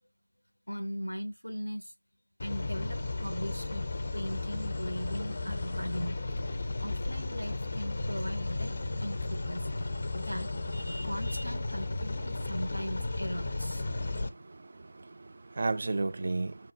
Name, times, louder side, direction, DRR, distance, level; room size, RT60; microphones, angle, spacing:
voice 1, 0.7-1.9 2.4-3.8 4.1-6.2 6.8-9.7 10.1-13.9, equal, 80° left, 0.5 m, -39 dB
sound 1, 2.4-14.3, left 2 dB, 30° left, 0.5 m, -34 dB
voice 2, 13.9-16.7, right 3 dB, 30° right, 0.3 m, -34 dB
4.3 x 3.7 x 2.5 m
figure-of-eight pair, 170°, 0 cm